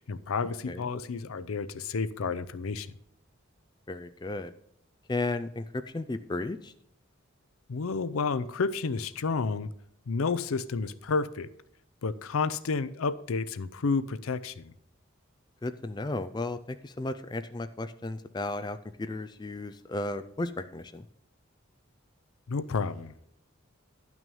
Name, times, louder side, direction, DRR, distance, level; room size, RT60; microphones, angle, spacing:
voice 1, 0.0-2.9 7.7-9.7 10.1-11.5 12.0-14.7 22.5-23.3, left 4 dB, 85° left, 0.5 m, -31 dB
voice 2, 3.9-4.5 5.1-6.7 15.6-16.6 16.8-21.0, left 2 dB, 20° left, 0.3 m, -34 dB
11.0 x 6.0 x 5.4 m
head